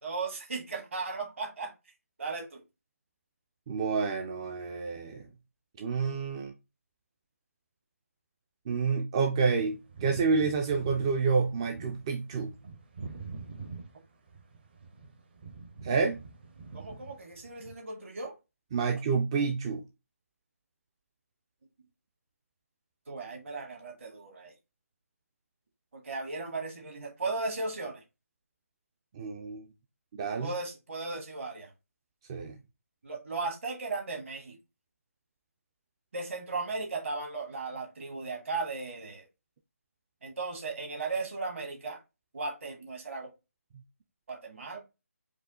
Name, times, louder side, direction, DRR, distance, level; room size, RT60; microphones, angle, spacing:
voice 1, 0.0-1.7 2.2-2.6 16.7-18.3 23.1-24.5 25.9-28.0 30.4-31.7 33.0-34.6 36.1-39.2 40.2-42.0 42.3-43.3 44.3-44.8, right 3 dB, 55° right, 1.4 m, -36 dB
voice 2, 3.7-5.3 5.8-6.5 8.7-12.5 15.8-16.2 18.7-19.8 29.1-29.7 30.1-30.5 32.3-32.6, right 5 dB, 20° right, 0.3 m, -29 dB
sound 1, 9.6-17.8, right 4 dB, 40° right, 0.7 m, -45 dB
4.9 x 2.3 x 3.6 m
figure-of-eight pair, 150°, 8 cm